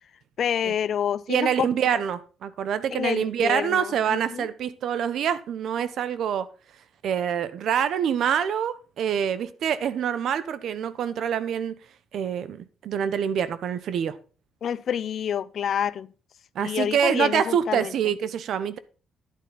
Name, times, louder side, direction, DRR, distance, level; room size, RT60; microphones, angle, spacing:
voice 1, 0.4-2.0 2.9-4.5 14.6-16.1 16.6-17.9, left 9 dB, 60° left, 0.6 m, -28 dB
voice 2, 1.3-6.5 7.0-11.8 12.1-14.2 16.5-18.8, right 8 dB, 70° right, 1.0 m, -26 dB
10.5 x 9.1 x 4.1 m
cardioid pair, 90°, 0 cm